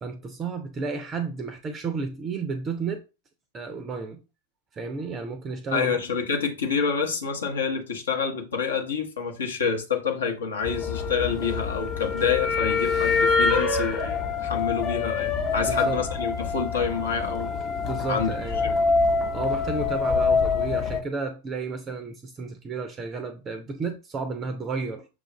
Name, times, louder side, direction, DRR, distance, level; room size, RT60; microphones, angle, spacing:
voice 1, 0.0-3.0 3.5-4.2 4.7-6.0 15.6-16.0 17.8-18.6 19.3-25.1, right 4 dB, 25° right, 0.4 m, -32 dB
voice 2, 5.7-17.5 18.1-18.7, left 6 dB, 65° left, 0.9 m, -28 dB
sound 1, 10.6-21.0, left 4 dB, 30° left, 0.6 m, -25 dB
6.1 x 2.3 x 2.9 m
figure-of-eight pair, 90°, 0 cm